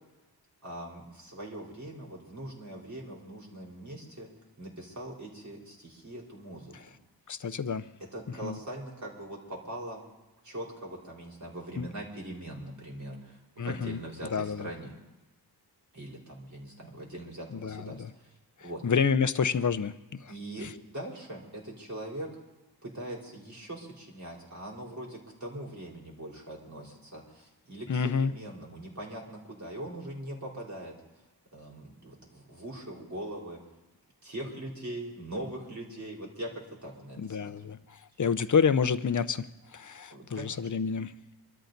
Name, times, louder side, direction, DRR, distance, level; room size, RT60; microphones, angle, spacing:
voice 1, 0.6-4.3 4.6-6.9 8.1-10.0 10.4-15.0 15.9-18.3 18.6-18.8 20.3-20.7 20.9-22.3 22.8-30.9 31.5-33.6 34.2-37.7 40.1-40.7, right 1 dB, 45° right, -3 dB, 4.4 m, -41 dB
voice 2, 7.3-7.9 8.4-8.6 11.8-11.9 13.6-14.0 14.3-14.7 17.6-18.1 18.8-20.3 27.9-28.3 37.2-39.5 39.7-41.2, left 6 dB, 50° left, 13 dB, 0.7 m, -28 dB
24.5 x 13.0 x 4.0 m, 1.1 s
wide cardioid pair, 95°, 40 cm